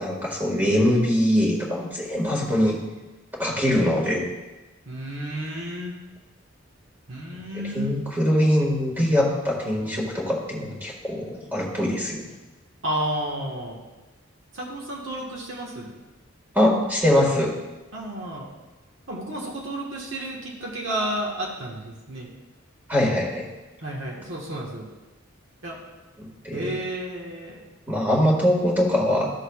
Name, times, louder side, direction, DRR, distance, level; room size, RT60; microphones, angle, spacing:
voice 1, 0.0-2.8 3.3-4.2 7.7-12.2 16.5-17.5 22.9-23.5 26.2-26.7 27.9-29.3, left 1 dB, 10° right, -3 dB, 1.7 m, -22 dB
voice 2, 4.8-5.9 7.1-7.9 12.8-13.8 14.5-16.0 17.9-18.5 19.1-22.3 23.8-24.9 25.6-25.8 26.5-27.6, right 1 dB, 70° right, -3 dB, 1.4 m, -31 dB
14.0 x 6.6 x 2.4 m, 1.1 s
head